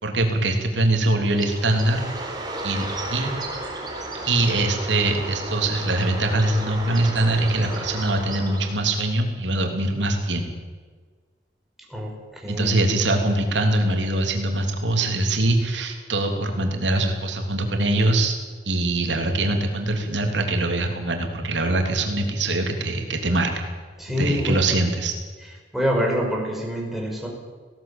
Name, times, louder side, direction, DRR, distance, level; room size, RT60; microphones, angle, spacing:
voice 1, 0.0-2.0 2.6-3.3 4.3-10.5 12.5-18.4 18.6-23.7 24.2-25.2, right 2 dB, 80° right, 3 dB, 3.2 m, -23 dB
Bird, 1.3-9.0, right 2 dB, 20° right, 4.3 m, -33 dB
voice 2, 11.9-12.8 24.0-24.6 25.7-27.3, equal, ahead, -1 dB, 5.0 m, -26 dB
19.0 x 17.0 x 8.8 m, 1.5 s
head